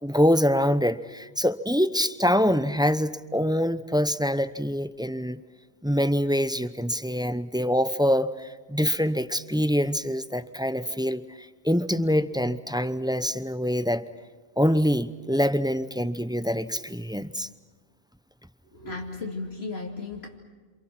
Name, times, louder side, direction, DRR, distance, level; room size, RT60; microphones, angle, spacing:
voice 1, 0.0-5.4 5.8-14.0 14.6-17.5, equal, 5° right, 12 dB, 0.7 m, -25 dB
voice 2, 18.7-20.4, left 3 dB, 75° left, 0 dB, 2.7 m, -35 dB
27.5 x 27.5 x 6.0 m, 1.4 s
omnidirectional pair, 1.1 m